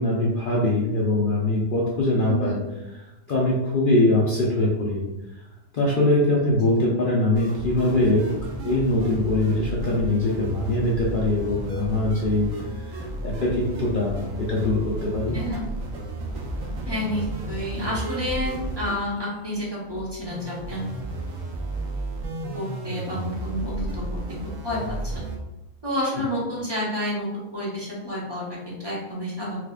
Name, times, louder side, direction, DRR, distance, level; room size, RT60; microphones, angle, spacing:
voice 1, 0.0-2.6 3.3-5.0 5.7-8.3 8.6-12.5 12.9-14.2 14.5-15.4, left 2 dB, 55° left, -5 dB, 0.6 m, -22 dB
sound 1, 7.3-25.4, right 2 dB, 80° right, 1.1 m, -33 dB
voice 2, 15.3-15.6 16.8-20.9 22.5-24.0 24.4-25.2 25.8-29.6, left 1 dB, 20° right, -6 dB, 1.0 m, -30 dB
4.7 x 2.4 x 2.4 m, 1.0 s
omnidirectional pair, 1.4 m